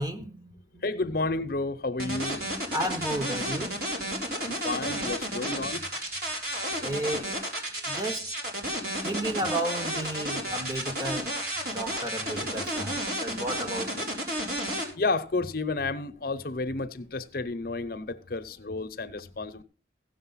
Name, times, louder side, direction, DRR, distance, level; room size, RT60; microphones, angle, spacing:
voice 1, 0.0-0.8 2.7-3.7 6.8-7.3 7.9-8.3 9.0-11.3 11.6-14.1, right 1 dB, 20° right, 1.3 m, -33 dB
voice 2, 0.8-2.4 4.4-5.9 14.9-19.6, left 3 dB, 50° left, 0.8 m, -31 dB
sound 1, 2.0-14.8, right 1 dB, 55° right, 4.2 m, -32 dB
16.0 x 6.7 x 5.6 m
head